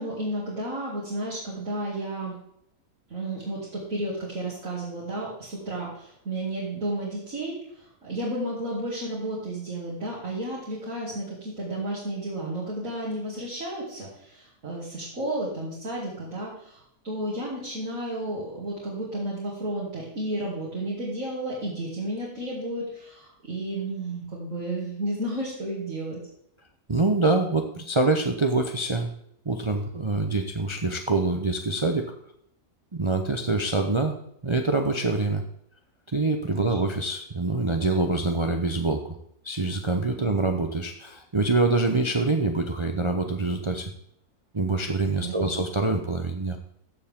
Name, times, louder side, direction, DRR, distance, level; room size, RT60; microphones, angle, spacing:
voice 1, 0.0-2.4 3.1-26.2 36.5-36.6 40.2-40.5 45.2-45.7, right 1 dB, 60° right, -7 dB, 2.8 m, -32 dB
voice 2, 26.9-29.1 29.5-32.1 32.9-34.2 34.4-35.4 36.1-39.1 39.4-43.9 44.5-46.6, right 3 dB, 30° right, 4 dB, 0.5 m, -25 dB
14.5 x 7.1 x 3.6 m, 0.72 s
omnidirectional pair, 1.6 m